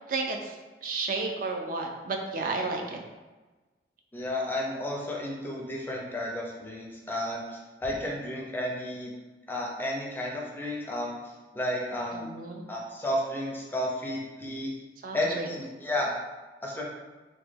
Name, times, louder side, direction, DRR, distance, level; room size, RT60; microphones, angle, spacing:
voice 1, 0.1-0.6 0.8-3.0 12.1-12.6 15.0-15.5, right 3 dB, 50° right, 2 dB, 0.4 m, -32 dB
voice 2, 4.1-9.1 9.5-11.1 11.5-12.3 12.7-14.7 15.1-16.1 16.6-16.8, left 1 dB, 10° left, -2 dB, 0.5 m, -32 dB
3.0 x 2.2 x 3.3 m, 1.2 s
head